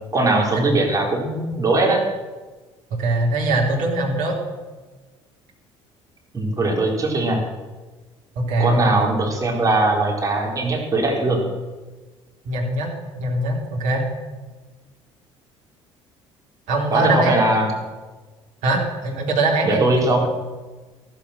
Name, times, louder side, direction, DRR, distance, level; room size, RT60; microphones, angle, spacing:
voice 1, 0.1-2.0 6.3-7.4 8.6-11.4 16.9-17.7 19.6-20.3, right 2 dB, 20° right, -1 dB, 4.6 m, -20 dB
voice 2, 2.9-4.4 8.4-8.9 12.5-12.9 13.2-14.0 16.7-17.4 18.6-19.8, right 2 dB, 55° right, -1 dB, 3.5 m, -22 dB
13.5 x 13.5 x 6.2 m, 1.3 s
figure-of-eight pair, 55°, 15 cm